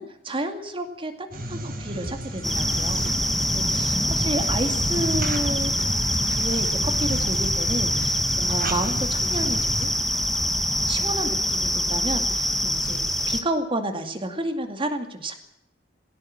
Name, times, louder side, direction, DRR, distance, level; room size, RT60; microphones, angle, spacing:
voice 1, 0.0-3.0 3.5-5.7 6.3-9.9 10.3-10.5 10.9-15.3, right 1 dB, 30° right, 6 dB, 2.4 m, -31 dB
sound 1, 1.3-9.9, right 1 dB, 50° right, 4.4 m, -33 dB
sound 2, 2.0-7.5, right 1 dB, 85° right, 3.7 m, -38 dB
sound 3, 2.4-13.4, equal, ahead, 1.7 m, -24 dB
19.0 x 16.5 x 8.8 m, 0.78 s
head